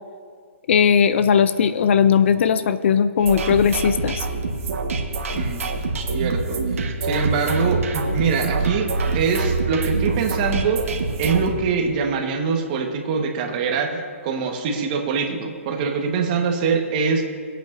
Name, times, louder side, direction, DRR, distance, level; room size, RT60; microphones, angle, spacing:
voice 1, 0.7-4.3, left 7 dB, 55° left, 13 dB, 0.5 m, -18 dB
sound 1, 3.2-11.5, right 3 dB, 70° right, 1.4 m, -25 dB
voice 2, 6.1-10.8 11.2-17.2, right 5 dB, 35° right, 2 dB, 1.4 m, -24 dB
21.5 x 8.3 x 2.7 m, 2.1 s
hypercardioid pair, 155°, 8 cm